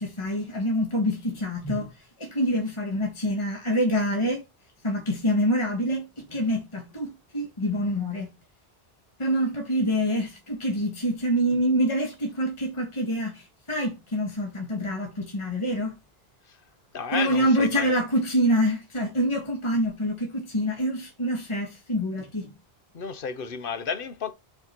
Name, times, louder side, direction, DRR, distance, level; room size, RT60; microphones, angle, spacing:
voice 1, 0.0-4.4 4.8-8.3 9.2-16.0 17.1-22.5, equal, 30° left, 1.7 m, -26 dB
voice 2, 16.9-18.0 22.9-24.3, left 6 dB, 60° left, 1.1 m, -32 dB
8.4 x 4.4 x 4.5 m
omnidirectional pair, 1.1 m